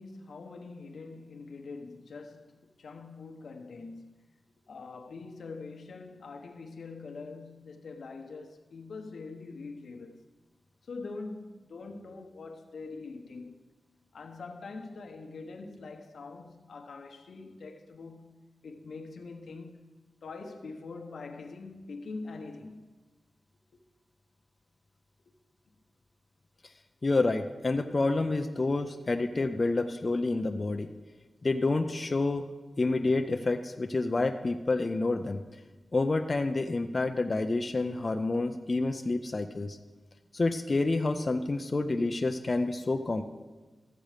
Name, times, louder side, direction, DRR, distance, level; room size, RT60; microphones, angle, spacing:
voice 1, 0.0-4.2 4.7-10.2 10.8-13.6 14.1-19.9 20.2-22.9 25.2-25.3, left 3 dB, 85° left, 1.0 m, -44 dB
voice 2, 27.0-30.9 31.4-32.5 32.8-35.4 35.9-39.8 40.3-43.2, left 3 dB, 35° left, 0.5 m, -28 dB
13.5 x 7.7 x 5.0 m
wide cardioid pair, 115°, 0 cm